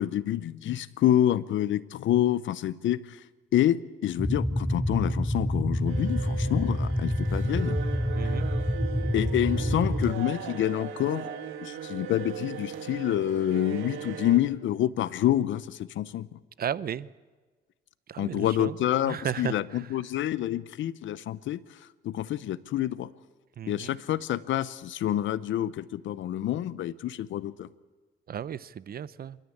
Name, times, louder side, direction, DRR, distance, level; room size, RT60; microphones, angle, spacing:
voice 1, 0.0-3.2 3.5-7.8 8.2-8.4 9.1-11.3 11.6-16.3 18.2-23.1 23.7-27.7, left 12 dB, 75° left, 17 dB, 0.8 m, -27 dB
sound 1, 4.2-10.1, equal, 5° left, 0.7 m, -27 dB
sound 2, 5.9-14.4, right 9 dB, 85° right, 2.2 m, -38 dB
voice 2, 8.2-8.5 9.6-9.7 16.6-17.1 18.1-18.8 19.0-19.5 23.6-23.9 28.3-29.4, right 9 dB, 50° right, 19 dB, 0.7 m, -34 dB
27.0 x 13.0 x 8.7 m, 1.3 s
cardioid pair, 90°, 20 cm